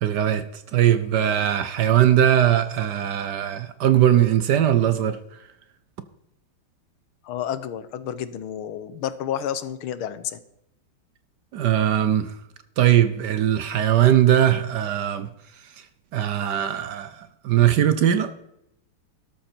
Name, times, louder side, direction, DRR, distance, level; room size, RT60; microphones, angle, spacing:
voice 1, 0.0-5.2 11.5-12.4 12.8-15.3 16.1-18.3, right 11 dB, 65° right, 1.1 m, -20 dB
voice 2, 7.2-10.4, left 10 dB, 75° left, 1.7 m, -30 dB
13.0 x 12.5 x 4.4 m
omnidirectional pair, 2.4 m